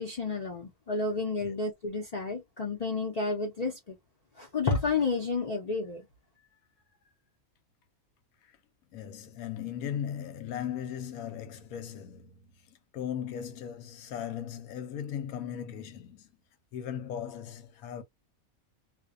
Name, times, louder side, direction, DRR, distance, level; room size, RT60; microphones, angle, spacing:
voice 1, 0.0-4.0 4.4-6.1, left 4 dB, 40° left, 0.6 m, -31 dB
voice 2, 8.9-16.3 16.7-18.0, left 9 dB, 85° left, 1.1 m, -38 dB
2.5 x 2.2 x 2.4 m
omnidirectional pair, 1.5 m